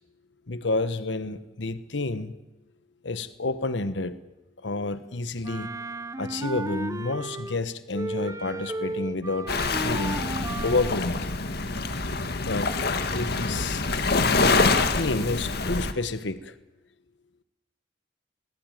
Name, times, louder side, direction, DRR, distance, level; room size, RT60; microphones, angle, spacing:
voice 1, 0.5-2.4 3.0-4.2 4.6-5.8 6.2-10.2 10.6-11.3 12.4-12.7 13.1-13.8 14.4-16.6, left 2 dB, 80° left, 1.2 m, -30 dB
Wind instrument woodwind instrument, 5.4-7.6 7.9-11.0, right 2 dB, 20° right, 0.9 m, -34 dB
Waves surf, 9.5-15.9, left 3 dB, 60° left, 1.9 m, -25 dB
21.5 x 20.0 x 9.2 m
head